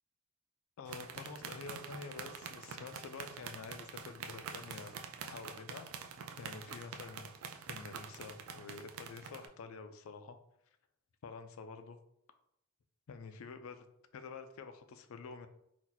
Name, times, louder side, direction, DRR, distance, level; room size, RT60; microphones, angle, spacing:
voice 1, 0.8-5.0 5.2-5.9 6.4-7.3 7.7-10.4 11.2-12.0 13.1-13.9 14.1-15.5, left 4 dB, 70° left, 8 dB, 0.4 m, -48 dB
sound 1, 0.9-9.5, right 6 dB, 70° right, 0.4 m, -46 dB
2.8 x 2.2 x 3.9 m, 0.74 s
head